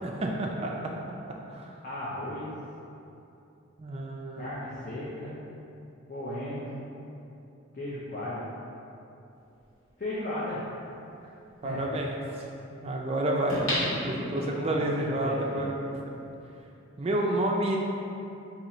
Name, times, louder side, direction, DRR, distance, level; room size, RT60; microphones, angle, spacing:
voice 1, 0.0-0.7 1.5-1.7 3.8-4.4 11.6-12.2 12.7-13.6 14.0-16.0 17.0-17.8, right 1 dB, 30° right, -1 dB, 0.3 m, -29 dB
voice 2, 1.8-2.5 4.4-5.4 6.1-6.8 7.7-8.5 10.0-10.6 11.2-11.3 11.6-12.0 14.6-15.8, left 1 dB, 40° left, -9 dB, 0.5 m, -36 dB
sound 1, 9.9-10.0 13.5-14.8 15.3-15.4, left 1 dB, 70° left, 1.2 m, -31 dB
2.8 x 2.6 x 4.2 m, 2.8 s
head